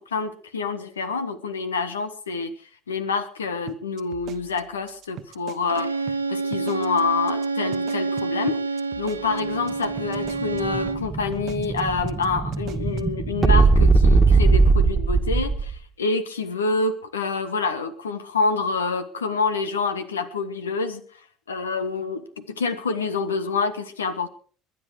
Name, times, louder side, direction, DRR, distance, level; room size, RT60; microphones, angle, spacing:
voice 1, 0.1-2.5 2.9-8.6 9.0-21.0 21.5-24.3, left 4 dB, 80° left, 11 dB, 1.3 m, -27 dB
sound 1, 3.7-5.8 6.1-6.2 6.5-7.0 7.3-7.5 7.7-10.6 10.9-11.0 11.3-11.8 12.1-12.2 12.5-13.1, right 12 dB, 55° right, 1.1 m, -41 dB
Bowed string instrument, 5.7-11.1, right 3 dB, 90° right, 0.6 m, -28 dB
Explosion, 9.7-15.8, right 3 dB, 20° right, 1.6 m, -20 dB
22.0 x 10.5 x 4.8 m, 0.44 s
figure-of-eight pair, 60°, 0 cm